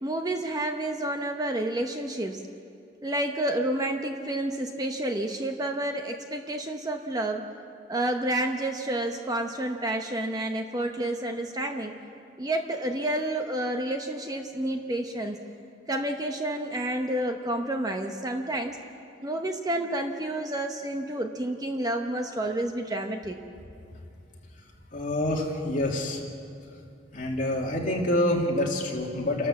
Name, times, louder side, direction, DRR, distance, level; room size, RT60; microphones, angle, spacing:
voice 1, 0.0-2.4 3.0-7.5 7.9-11.9 12.4-15.4 15.9-18.8 19.2-23.4, right 1 dB, 20° right, 4 dB, 0.9 m, -29 dB
voice 2, 24.9-26.2 27.1-29.5, left 1 dB, 40° left, -1 dB, 2.7 m, -27 dB
28.5 x 12.5 x 7.3 m, 2.6 s
head